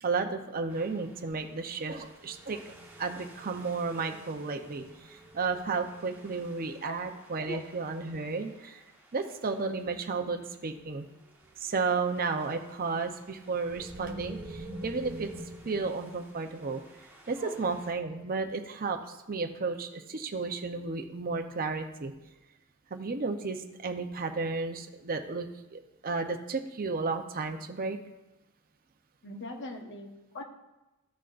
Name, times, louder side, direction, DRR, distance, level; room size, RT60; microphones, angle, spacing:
voice 1, 0.0-8.8 9.1-11.1 11.6-15.3 15.6-16.8 17.3-22.1 22.9-28.0, right 4 dB, 40° right, 5 dB, 0.7 m, -33 dB
sound 1, 0.7-9.8 10.8-10.9 11.3-17.9, right 1 dB, 10° right, 1.3 m, -49 dB
voice 2, 29.2-30.4, left 1 dB, 55° left, 3 dB, 1.2 m, -40 dB
14.5 x 6.3 x 2.5 m, 1.0 s
head